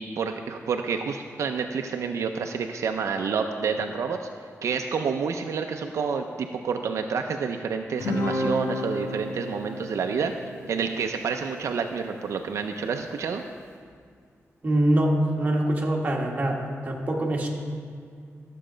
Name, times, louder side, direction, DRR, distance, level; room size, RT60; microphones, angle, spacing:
voice 1, 0.0-4.2 4.6-10.3 10.7-13.4, right 5 dB, 80° right, 4 dB, 0.5 m, -29 dB
Guitar, 8.0-12.6, left 1 dB, 80° left, 1.7 m, -32 dB
voice 2, 14.6-17.5, right 1 dB, 30° right, -1 dB, 1.4 m, -24 dB
12.5 x 7.6 x 5.0 m, 2.1 s
wide cardioid pair, 165°, 5 cm